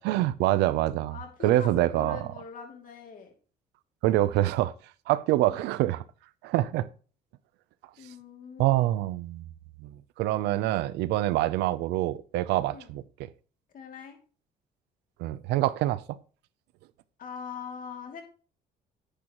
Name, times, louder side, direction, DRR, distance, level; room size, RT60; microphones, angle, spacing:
voice 1, 0.0-2.3 4.0-4.7 5.1-6.0 6.4-6.9 8.6-9.5 9.8-13.3 15.2-16.2, right 15 dB, 90° right, 0.6 m, -26 dB
voice 2, 1.1-3.3 5.3-5.6 8.0-8.9 12.7-12.9 13.7-14.2 17.2-18.2, left 6 dB, 55° left, 2.6 m, -42 dB
10.5 x 10.0 x 3.0 m
cardioid pair, 110°, 17 cm